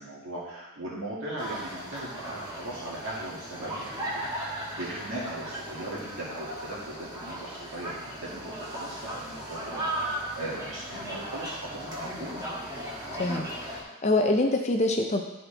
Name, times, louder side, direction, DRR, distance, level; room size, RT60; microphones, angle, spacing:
voice 1, 0.0-12.3, right 1 dB, 70° right, -7 dB, 2.1 m, -38 dB
sound 1, 1.4-13.8, right 1 dB, 20° right, 1.4 m, -37 dB
voice 2, 13.1-15.2, left 2 dB, 30° left, 3 dB, 0.5 m, -25 dB
12.5 x 4.3 x 3.4 m, 1.0 s
head